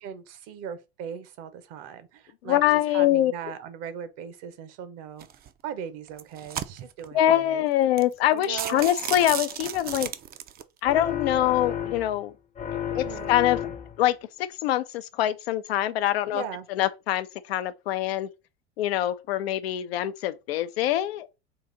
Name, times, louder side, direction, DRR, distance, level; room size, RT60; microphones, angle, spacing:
voice 1, 0.0-5.3 5.6-7.6 8.3-8.9 12.9-13.4 16.3-16.7, right 8 dB, 55° right, 0.9 m, -38 dB
voice 2, 2.5-3.3 7.1-10.1 10.8-12.3 12.7-13.6 14.0-16.4 16.7-18.3 18.8-21.3, left 13 dB, 75° left, 0.5 m, -24 dB
sound 1, 5.2-5.5 6.1-7.1 7.6-7.7 8.0-8.1 8.4-10.6, right 9 dB, 30° right, 0.5 m, -33 dB
sound 2, 10.8-12.3 12.6-14.1, left 9 dB, 25° left, 0.6 m, -32 dB
3.9 x 2.5 x 3.8 m
hypercardioid pair, 85°, 31 cm